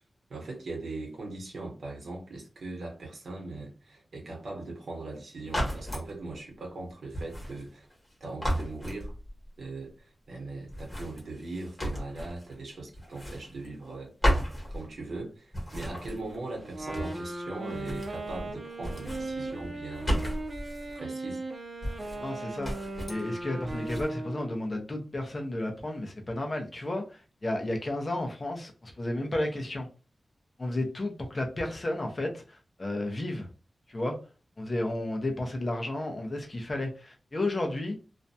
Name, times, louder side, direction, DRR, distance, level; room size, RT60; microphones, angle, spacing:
voice 1, 0.3-7.9 8.2-9.1 9.6-20.3 20.9-21.4, right 2 dB, 85° right, 0.9 m, -40 dB
sound 1, 5.4-6.1 7.1-8.1 8.4-9.5 10.7-12.6 12.9-13.9 14.2-15.2 15.5-17.3 17.6-18.5 18.8-21.0 21.8-22.3 22.6-23.3 23.7-24.1, equal, 20° left, 1.2 m, -34 dB
Wind instrument woodwind instrument, 16.7-24.6, right 2 dB, 40° right, 0.5 m, -38 dB
voice 2, 22.2-29.9 30.6-33.5 33.9-34.2 34.6-38.0, left 1 dB, 35° left, 0.7 m, -32 dB
2.5 x 2.2 x 2.6 m
wide cardioid pair, 125°, 0 cm